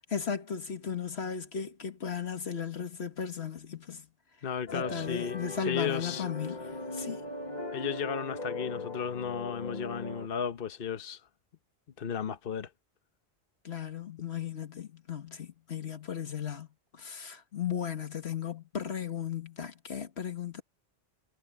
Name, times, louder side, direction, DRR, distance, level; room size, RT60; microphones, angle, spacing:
voice 1, 0.1-4.1 4.7-7.2 13.6-16.7 16.9-20.6, left 7 dB, 75° left, 1.9 m, -36 dB
voice 2, 4.4-6.3 7.7-11.3 12.0-12.7, left 7 dB, 60° left, 1.1 m, -34 dB
sound 1, 4.7-10.3, left 2 dB, 45° left, 1.7 m, -39 dB
omnidirectional pair, 1.1 m